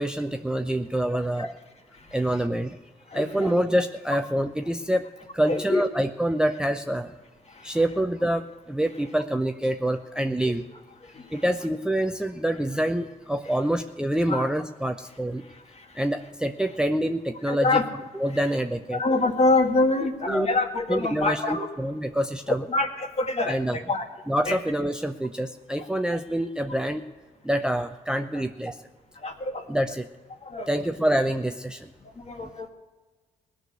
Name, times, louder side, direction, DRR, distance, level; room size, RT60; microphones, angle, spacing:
voice 1, 0.0-1.5 2.1-2.8 3.1-5.1 5.3-7.1 7.6-10.6 11.3-15.4 15.9-17.8 18.1-19.0 20.0-20.5 20.9-22.6 23.4-23.8 24.3-27.0 27.4-28.8 29.7-30.1 30.7-31.9 32.4-32.5, right 1 dB, 5° right, 7 dB, 0.7 m, -26 dB
voice 2, 3.1-3.5 5.5-5.8 14.3-14.4 17.5-17.8 18.9-21.7 22.7-24.0 24.5-24.6 29.2-29.6 30.5-30.7 32.3-32.7, left 2 dB, 40° left, 4 dB, 2.0 m, -25 dB
18.5 x 6.5 x 8.0 m, 1.3 s
supercardioid pair, 60°, 17 cm